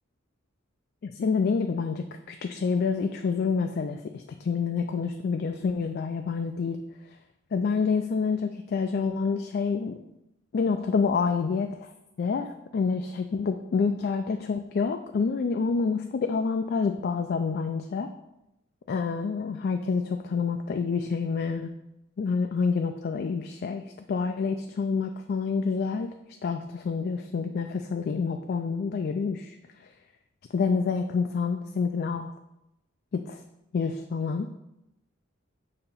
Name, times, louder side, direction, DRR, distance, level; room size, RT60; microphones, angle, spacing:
voice 1, 1.0-6.8 7.5-10.0 10.5-11.9 12.2-18.1 18.9-21.7 22.2-26.1 26.4-29.9 30.5-32.3 33.1-33.4 33.7-34.6, left 5 dB, 50° left, 5 dB, 0.3 m, -28 dB
6.8 x 2.9 x 5.4 m, 0.89 s
head